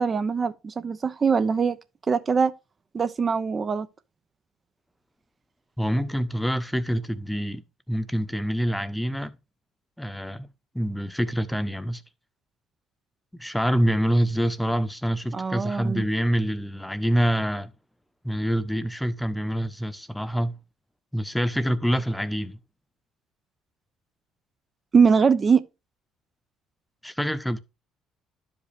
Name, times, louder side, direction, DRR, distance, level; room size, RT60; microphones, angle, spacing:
voice 1, 0.0-1.8 2.1-2.5 2.9-3.9 15.3-16.0 24.9-25.6, right 5 dB, 35° right, 0.8 m, -22 dB
voice 2, 5.8-7.6 7.9-9.4 10.0-10.5 10.7-12.0 13.3-17.7 18.2-20.6 21.1-22.6 27.0-27.6, equal, 5° left, 1.0 m, -26 dB
11.5 x 5.2 x 3.4 m
hypercardioid pair, 65°, 0 cm